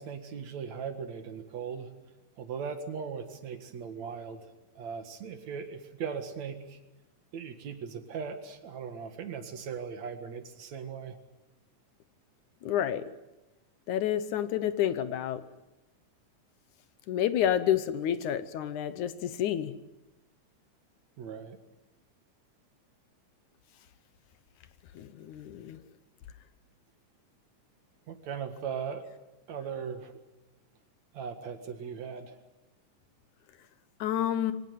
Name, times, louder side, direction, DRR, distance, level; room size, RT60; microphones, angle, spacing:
voice 1, 0.0-1.9 2.4-6.8 7.3-11.2 21.2-21.6 28.1-29.0 29.5-30.2 31.1-32.4, right 6 dB, 60° right, 8 dB, 2.9 m, -39 dB
voice 2, 12.6-13.0 13.9-15.4 17.1-19.7 25.0-25.8 34.0-34.5, left 10 dB, 70° left, 13 dB, 2.3 m, -29 dB
24.0 x 18.5 x 9.4 m, 1.0 s
omnidirectional pair, 3.7 m